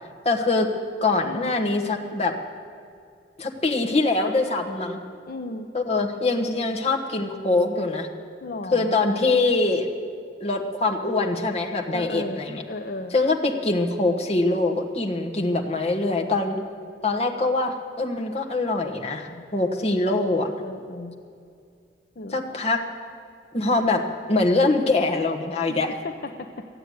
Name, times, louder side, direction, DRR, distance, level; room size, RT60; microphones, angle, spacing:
voice 1, 0.2-0.7 1.0-2.3 3.4-5.0 5.7-8.1 8.7-9.9 10.4-12.6 13.1-16.6 17.0-20.5 22.3-22.8 23.5-24.0 24.3-25.9, left 2 dB, 35° left, 2 dB, 1.3 m, -23 dB
voice 2, 1.2-1.7 5.3-5.7 8.4-9.0 11.9-12.4 12.7-13.1 16.5-16.7 19.3-19.5 19.8-19.9 20.4-21.1 22.2-22.6 25.7-26.5, left 2 dB, 55° left, 5 dB, 0.7 m, -35 dB
14.0 x 9.0 x 9.3 m, 2.3 s
head